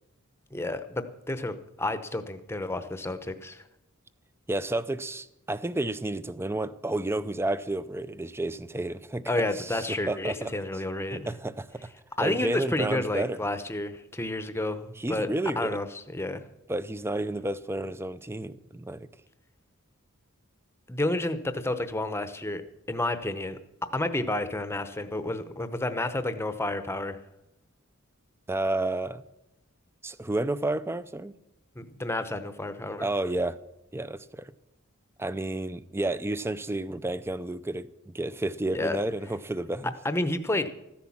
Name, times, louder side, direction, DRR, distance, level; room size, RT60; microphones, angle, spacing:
voice 1, 0.5-3.6 9.3-11.3 12.2-15.3 15.6-16.4 20.9-22.6 22.9-23.6 23.9-27.2 31.8-33.1 38.7-39.0 40.0-40.7, left 2 dB, 10° left, 0.8 m, -30 dB
voice 2, 4.5-10.5 11.1-11.9 12.2-13.4 15.0-15.8 16.7-19.1 28.5-29.2 30.0-31.3 33.0-33.6 33.9-34.5 35.2-39.9, right 2 dB, 10° right, 0.5 m, -31 dB
14.0 x 10.0 x 7.2 m
head